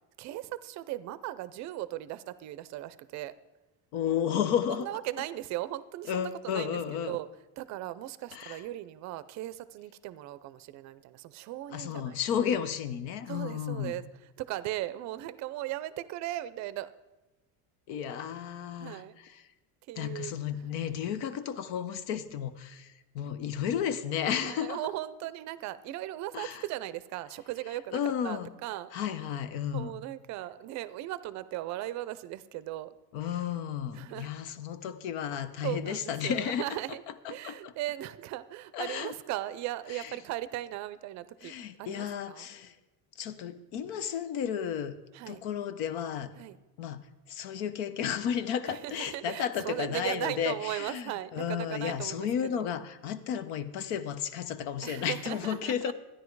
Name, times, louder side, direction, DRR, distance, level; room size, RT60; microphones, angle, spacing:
voice 1, 0.2-3.3 4.8-7.3 7.6-12.2 13.3-14.0 14.4-16.9 18.8-19.2 19.9-20.3 24.4-28.9 29.7-32.9 33.9-34.3 35.6-37.0 37.3-41.5 41.8-42.5 45.1-45.4 46.4-46.6 48.6-52.3 52.5-52.7 54.8-55.9, right 15 dB, 45° right, 16 dB, 0.5 m, -37 dB
voice 2, 3.9-4.9 6.1-7.2 8.3-8.6 11.7-14.0 17.9-19.5 20.0-24.9 26.3-26.6 27.9-28.5 28.9-29.9 33.1-36.7 37.1-37.7 38.7-39.1 39.9-40.2 41.4-42.8 43.2-45.0 45.3-46.3 46.8-47.0 47.3-55.9, left 8 dB, 75° left, 13 dB, 0.9 m, -33 dB
13.0 x 10.0 x 4.7 m, 1.1 s
cardioid pair, 170°, 40 cm